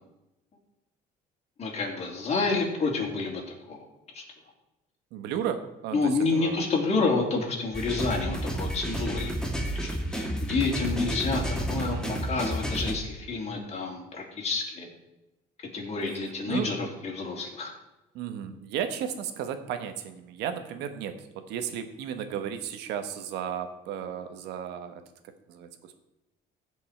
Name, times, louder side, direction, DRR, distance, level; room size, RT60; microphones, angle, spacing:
voice 1, 1.6-3.4 3.7-3.8 4.1-4.2 5.9-9.4 10.1-12.0 12.2-14.9 15.7-16.8 17.0-17.7, left 3 dB, 40° left, -1 dB, 3.2 m, -29 dB
voice 2, 5.1-6.7 11.7-12.5 16.1-16.7 18.1-25.0 25.5-26.0, right 9 dB, 90° right, 9 dB, 1.1 m, -34 dB
sound 1, 7.7-12.9, equal, 5° left, 1.8 m, -31 dB
15.5 x 5.4 x 4.4 m, 0.93 s
cardioid pair, 110°, 17 cm